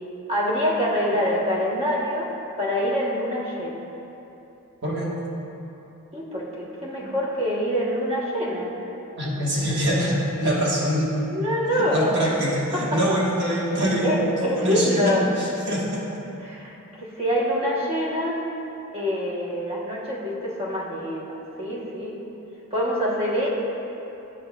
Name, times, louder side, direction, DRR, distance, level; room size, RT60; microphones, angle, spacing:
voice 1, 0.3-2.3 2.6-3.9 6.1-8.7 11.3-12.1 12.7-12.8 14.0-15.2 16.4-18.4 18.9-22.2 22.7-23.5, equal, 25° right, -5 dB, 1.0 m, -25 dB
voice 2, 4.8-5.2 9.2-11.2 11.7-14.2 14.5-16.1, equal, 55° right, -5 dB, 1.3 m, -24 dB
10.0 x 5.3 x 2.3 m, 3.0 s
head